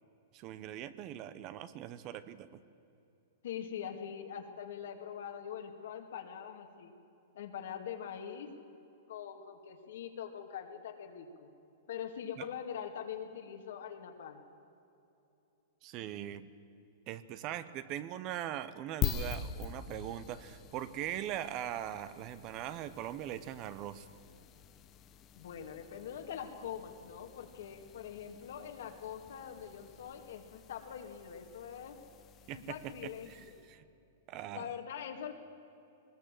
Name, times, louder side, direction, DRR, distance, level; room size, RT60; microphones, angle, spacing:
voice 1, 0.3-2.6 12.4-12.5 15.8-16.5 17.1-24.1 32.5-32.9 33.2-33.8 34.3-34.7, right 11 dB, 35° right, 14 dB, 0.8 m, -41 dB
voice 2, 3.4-6.9 7.3-8.5 9.1-11.5 11.9-14.4 25.4-32.0 32.5-33.6 34.5-35.3, left 8 dB, 75° left, 3 dB, 2.2 m, -43 dB
sound 1, 19.0-33.7, left 8 dB, 25° left, 0.9 m, -45 dB
20.5 x 20.0 x 7.7 m, 2.8 s
supercardioid pair, 155°, 0 cm